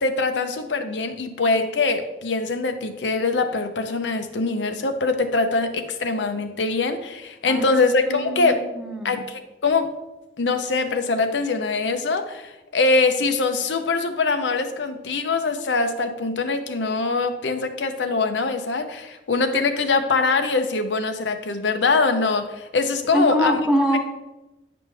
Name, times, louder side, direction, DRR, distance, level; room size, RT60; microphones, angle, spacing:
voice 1, 0.0-8.6 9.0-9.9 10.4-23.6, left 3 dB, 90° left, 8 dB, 0.7 m, -23 dB
voice 2, 7.5-9.2 23.1-24.0, equal, 5° right, 0 dB, 1.1 m, -24 dB
9.3 x 5.1 x 3.4 m, 1.0 s
head